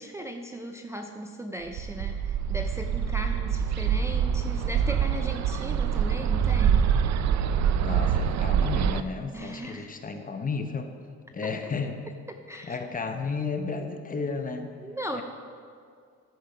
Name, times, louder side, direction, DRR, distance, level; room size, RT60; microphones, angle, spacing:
voice 1, 0.0-6.9 9.3-9.9 11.4-11.5 12.5-12.8 14.8-15.2, right 1 dB, 10° right, 3 dB, 0.4 m, -37 dB
Bird, 1.7-9.0, right 8 dB, 65° right, 0.5 m, -25 dB
voice 2, 7.8-10.9 11.3-12.1 12.6-14.7 15.1-15.2, left 4 dB, 30° left, 6 dB, 0.8 m, -33 dB
10.5 x 5.3 x 5.6 m, 2.1 s
cardioid pair, 90°, 30 cm